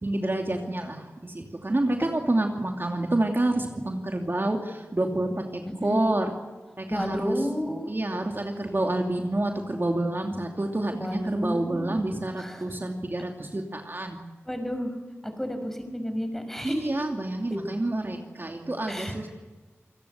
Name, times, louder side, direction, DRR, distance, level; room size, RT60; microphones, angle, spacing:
voice 1, 0.0-6.3 6.8-7.4 7.9-14.2 16.6-19.3, right 1 dB, 45° right, 3 dB, 2.7 m, -28 dB
voice 2, 5.6-6.0 6.9-7.9 11.0-11.9 12.4-12.7 14.5-14.9 15.2-16.9 18.9-19.3, equal, 5° left, 6 dB, 6.1 m, -31 dB
28.0 x 18.5 x 8.1 m, 1.3 s
wide cardioid pair, 55°, 5 cm